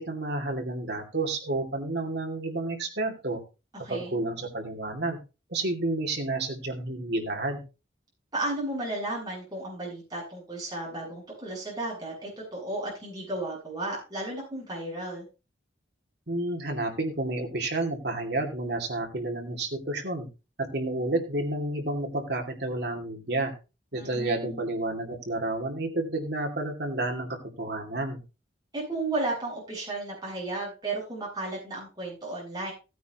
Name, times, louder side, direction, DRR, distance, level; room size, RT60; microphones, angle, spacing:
voice 1, 0.0-3.4 3.9-5.2 5.5-7.6 16.3-20.3 20.6-23.5 23.9-28.2, right 2 dB, 60° right, 2 dB, 2.4 m, -30 dB
voice 2, 3.8-4.2 8.3-15.3 23.9-24.6 28.7-32.7, right 2 dB, 20° right, -4 dB, 7.8 m, -34 dB
16.0 x 9.3 x 3.0 m, 0.29 s
head